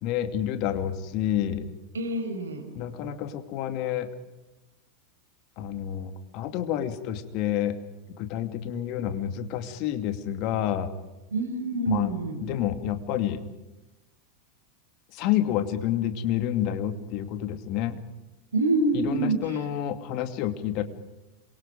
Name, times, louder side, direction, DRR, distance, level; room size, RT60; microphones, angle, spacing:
voice 1, 0.0-1.7 2.7-4.1 5.6-7.7 8.2-10.9 11.9-12.1 12.4-13.4 15.1-18.0 18.9-20.8, left 11 dB, 45° left, 8 dB, 2.6 m, -29 dB
voice 2, 1.9-2.6 11.3-12.4 18.5-19.4, right 2 dB, 75° right, 6 dB, 5.2 m, -26 dB
27.5 x 23.5 x 5.3 m, 1.0 s
figure-of-eight pair, 90°, 0 cm